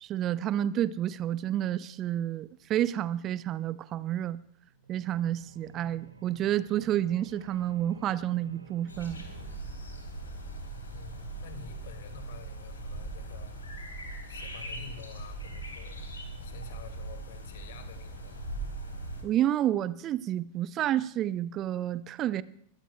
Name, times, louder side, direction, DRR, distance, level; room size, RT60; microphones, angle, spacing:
voice 1, 0.0-4.4 4.9-9.2 19.2-22.4, right 12 dB, 30° right, 0.4 m, -30 dB
sound 1, 4.7-9.5, right 2 dB, 80° right, 2.0 m, -51 dB
sound 2, 8.9-19.2, right 2 dB, 75° left, 3.6 m, -40 dB
voice 2, 10.9-13.9 14.3-16.1 16.4-18.5, left 5 dB, 55° left, 2.1 m, -49 dB
22.0 x 17.5 x 2.3 m
figure-of-eight pair, 90°, 0 cm